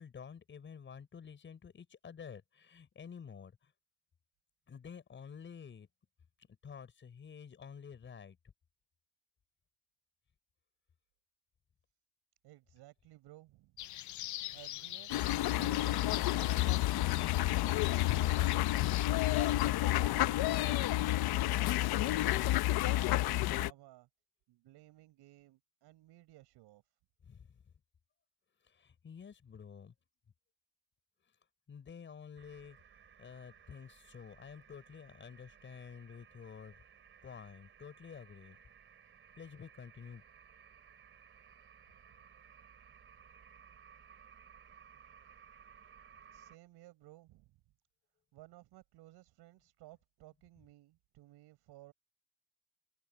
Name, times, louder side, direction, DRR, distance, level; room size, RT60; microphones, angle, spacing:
voice 1, 0.0-3.7 4.7-5.9 6.6-8.4 27.2-27.5 28.7-29.9 31.7-32.8 33.2-36.8 37.2-38.6 39.4-40.2, left 7 dB, 30° left, 6.0 m, -50 dB
voice 2, 12.4-13.8 14.5-15.2 15.6-20.9 21.4-24.1 24.5-26.8 46.3-47.6 48.3-51.9, right 17 dB, 90° right, 6.4 m, -57 dB
sound 1, 13.8-19.7, left 16 dB, 50° left, 0.6 m, -42 dB
sound 2, 15.1-23.7, left 15 dB, 70° left, 1.0 m, -30 dB
sound 3, 32.4-46.6, right 8 dB, 30° right, 3.8 m, -59 dB
cardioid pair, 175°, 39 cm